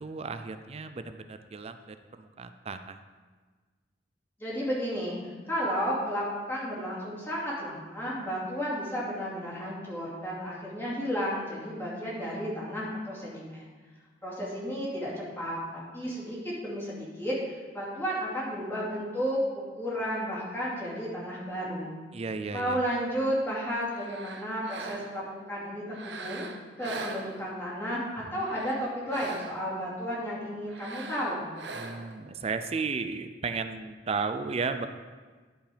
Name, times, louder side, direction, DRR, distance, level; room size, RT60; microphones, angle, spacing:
voice 1, 0.0-3.0 22.1-22.8 31.7-34.9, right 4 dB, 35° right, 9 dB, 0.4 m, -34 dB
voice 2, 4.4-5.2 5.5-13.6 14.2-19.4 19.8-21.9 22.5-26.5 26.8-31.5, equal, 15° left, -8 dB, 2.6 m, -33 dB
sound 1, 23.8-25.3 25.9-27.8 28.3-29.8 30.7-32.2, right 3 dB, 70° right, 0.7 m, -42 dB
11.5 x 5.2 x 5.0 m, 1.4 s
head